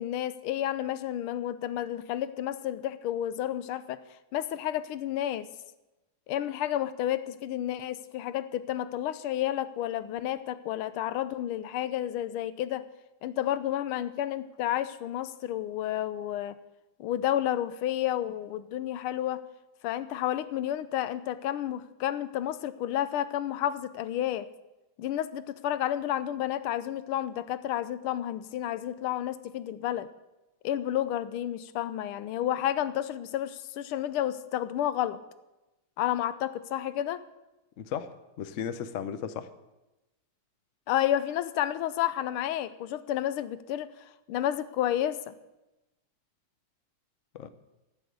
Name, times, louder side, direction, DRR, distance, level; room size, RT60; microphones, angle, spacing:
voice 1, 0.0-4.0 4.3-5.5 6.3-12.8 13.2-16.5 17.0-19.4 19.8-24.5 25.0-30.1 30.6-35.2 36.0-37.2 40.9-43.9 44.3-45.3, left 12 dB, 80° left, 14 dB, 1.5 m, -31 dB
voice 2, 37.8-39.5 47.3-47.5, left 8 dB, 60° left, 11 dB, 0.8 m, -35 dB
11.5 x 8.3 x 9.2 m, 1.0 s
omnidirectional pair, 2.3 m